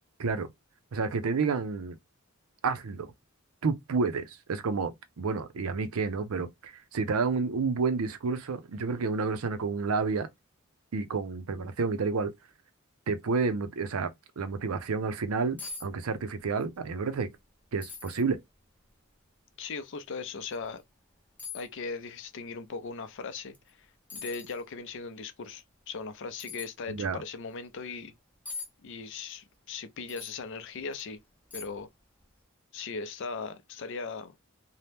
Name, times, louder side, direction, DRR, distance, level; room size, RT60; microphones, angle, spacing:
voice 1, 0.9-1.9 2.6-3.1 3.6-10.3 10.9-12.3 13.1-17.3 17.7-18.4 26.9-27.2, right 4 dB, 85° right, 0.5 m, -30 dB
sound 1, 15.6-15.9 16.2-16.7 17.1-17.2 17.8-18.2 18.9-19.0 20.5-20.6 21.4-21.7 23.5-23.7 24.1-24.6 26.4-26.7 28.5-28.7 30.1-30.4 30.9-31.0 31.5-31.9 32.2-32.3, left 4 dB, 10° left, 0.6 m, -41 dB
voice 2, 19.6-20.8 21.5-23.9 24.1-28.1 28.8-31.2 31.5-31.9 32.7-34.3, left 4 dB, 60° left, 0.5 m, -38 dB
2.8 x 2.1 x 3.3 m
head